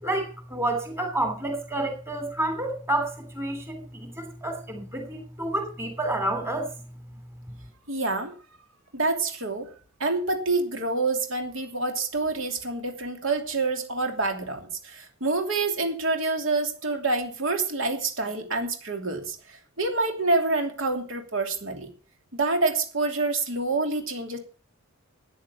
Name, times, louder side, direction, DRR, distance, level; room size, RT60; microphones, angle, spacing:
voice 1, 0.0-6.7, right 1 dB, 15° right, 5 dB, 3.0 m, -29 dB
voice 2, 7.9-8.3 8.9-9.7 10.0-21.9 22.3-24.4, right 3 dB, 65° right, 4 dB, 2.9 m, -27 dB
13.5 x 9.6 x 5.5 m, 0.39 s
head